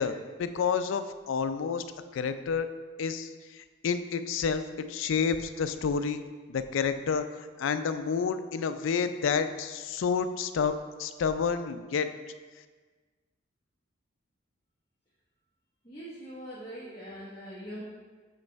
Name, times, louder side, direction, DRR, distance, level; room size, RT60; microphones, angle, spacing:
voice 1, 0.0-1.8 2.1-2.7 3.0-4.6 4.9-6.2 6.5-7.2 7.6-12.1, left 6 dB, 75° left, 10 dB, 0.4 m, -29 dB
voice 2, 15.8-17.8, equal, 20° left, -9 dB, 1.1 m, -42 dB
7.7 x 3.2 x 4.4 m, 1.4 s
head